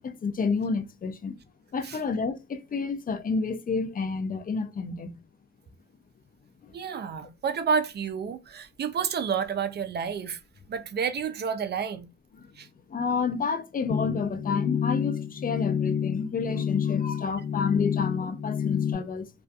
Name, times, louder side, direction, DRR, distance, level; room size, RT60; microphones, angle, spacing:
voice 1, 0.0-1.4 1.7-5.2 6.6-6.7 12.3-12.5 12.9-19.3, left 5 dB, 30° left, 0.4 m, -30 dB
voice 2, 6.7-10.4 10.7-12.1 12.6-12.7, right 6 dB, 35° right, 0.4 m, -30 dB
sound 1, 13.9-18.9, left 8 dB, 70° left, 0.9 m, -29 dB
2.6 x 2.3 x 2.3 m
cardioid pair, 90°, 30 cm